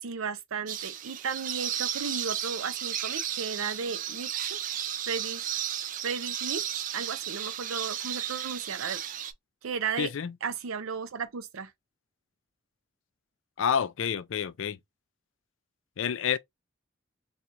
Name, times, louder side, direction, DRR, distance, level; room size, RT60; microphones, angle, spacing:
voice 1, 0.0-4.6 5.1-5.5 6.0-9.0 9.6-10.1 10.4-11.7, right 5 dB, 90° right, 0.6 m, -35 dB
sound 1, 0.7-9.3, right 10 dB, 40° right, 0.3 m, -34 dB
voice 2, 10.0-10.3 13.6-14.8 16.0-16.4, left 8 dB, 65° left, 0.4 m, -28 dB
4.2 x 2.3 x 2.5 m
head